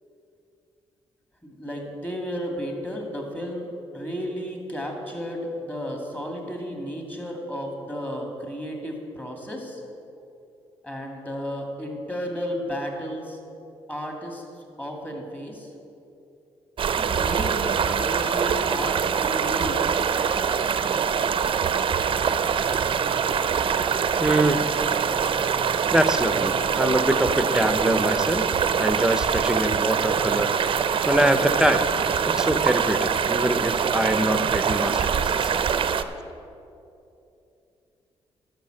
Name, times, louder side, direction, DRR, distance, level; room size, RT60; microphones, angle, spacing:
voice 1, 1.4-9.8 10.8-13.4 13.9-14.5 14.8-15.7 17.0-19.9, equal, 15° left, 1 dB, 2.3 m, -33 dB
sound 1, 16.8-36.0, right 7 dB, 50° right, 0.5 m, -24 dB
voice 2, 24.2-24.6 25.9-28.5 28.8-31.9 32.3-35.6, right 1 dB, 5° right, 10 dB, 0.7 m, -24 dB
11.5 x 5.8 x 7.7 m, 2.7 s
cardioid pair, 80°, 11 cm